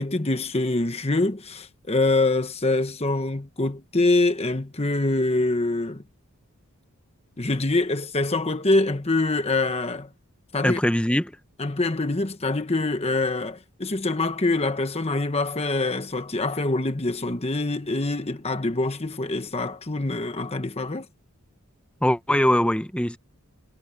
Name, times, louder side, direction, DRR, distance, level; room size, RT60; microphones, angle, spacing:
voice 1, 0.0-6.0 7.4-10.1 10.5-10.8 11.6-21.1, left 2 dB, 25° left, 1.1 m, -25 dB
voice 2, 10.6-11.3 22.0-23.2, left 1 dB, 5° left, 1.0 m, -22 dB
head